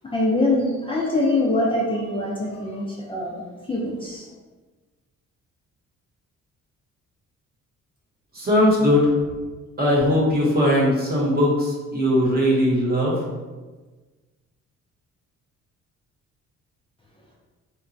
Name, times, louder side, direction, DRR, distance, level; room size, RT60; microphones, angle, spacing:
voice 1, 0.0-3.4 3.7-4.3, left 2 dB, 20° left, -4 dB, 0.5 m, -23 dB
voice 2, 8.3-9.1 9.8-13.2, left 1 dB, 30° right, -4 dB, 0.9 m, -19 dB
2.9 x 2.2 x 2.5 m, 1.3 s
cardioid pair, 90°, 30 cm